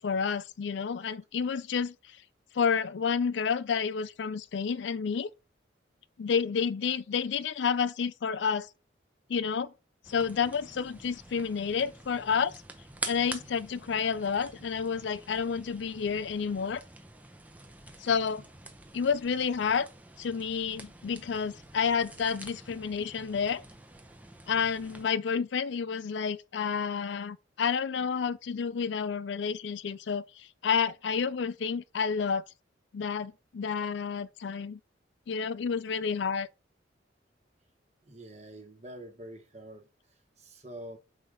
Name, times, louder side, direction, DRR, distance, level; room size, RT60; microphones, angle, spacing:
voice 1, 0.0-2.2 2.5-5.3 6.2-8.7 9.3-9.7 10.1-12.6 13.1-16.8 18.0-18.4 18.9-19.9 20.2-23.6 24.5-32.4 32.9-34.8 35.3-36.5, left 6 dB, 70° left, 0.4 m, -30 dB
sound 1, 10.0-25.1, right 2 dB, 10° right, 0.7 m, -47 dB
voice 2, 38.1-39.9 40.4-41.0, right 1 dB, 35° right, 1.2 m, -45 dB
5.8 x 3.8 x 4.9 m
head